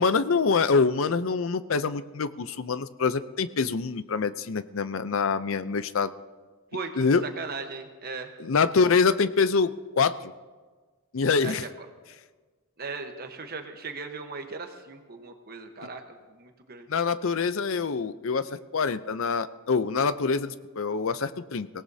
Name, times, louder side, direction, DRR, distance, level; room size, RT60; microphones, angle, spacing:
voice 1, 0.0-6.1 7.0-7.2 8.4-9.7 10.0-10.3 11.1-11.6 16.9-21.7, left 5 dB, 65° left, 13 dB, 0.6 m, -25 dB
voice 2, 6.7-8.3 11.4-11.9 12.8-16.9, right 4 dB, 45° right, 5 dB, 1.1 m, -38 dB
24.5 x 17.5 x 2.8 m, 1.4 s
head